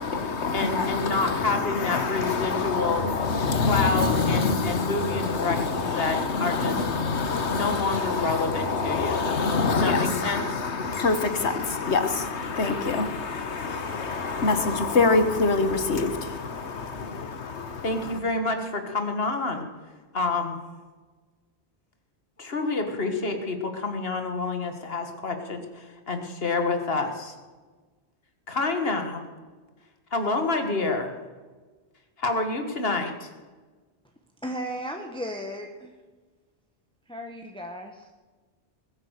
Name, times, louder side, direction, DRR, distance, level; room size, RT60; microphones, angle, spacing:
voice 1, 0.0-18.2, left 4 dB, 80° left, 9 dB, 1.6 m, -26 dB
voice 2, 0.5-3.1 3.7-6.8 7.5-9.3 9.7-10.4 17.8-19.6 20.1-20.6 22.4-27.3 28.5-29.2 30.1-31.1 32.2-33.3, left 3 dB, 60° left, 6 dB, 2.0 m, -28 dB
voice 3, 34.4-35.9 37.1-38.1, equal, 5° left, 3 dB, 1.1 m, -35 dB
21.0 x 9.1 x 6.6 m, 1.3 s
omnidirectional pair, 1.1 m